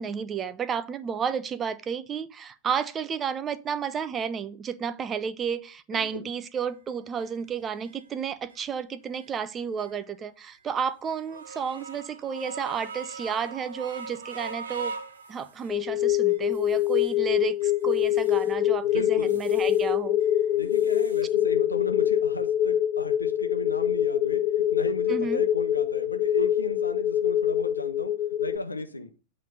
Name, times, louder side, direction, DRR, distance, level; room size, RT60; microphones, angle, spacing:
voice 1, 0.0-14.9 15.3-20.2 25.1-25.4, right 7 dB, 25° right, 0.5 m, -32 dB
voice 2, 5.9-6.3 18.8-19.4 20.5-28.1 28.4-29.1, left 2 dB, 80° left, 0.8 m, -35 dB
sound 1, 6.6-6.7 7.2-7.3 7.8-7.9 8.5-8.7 9.1-9.3 9.8-9.9 10.5-10.6 11.1-15.8 16.3-17.2 17.6-18.5 18.9-19.9 20.2-21.2, right 4 dB, 70° right, 1.0 m, -41 dB
sound 2, 15.7-28.6, left 11 dB, 35° left, 0.4 m, -25 dB
8.2 x 3.2 x 5.4 m
figure-of-eight pair, 90°, 0 cm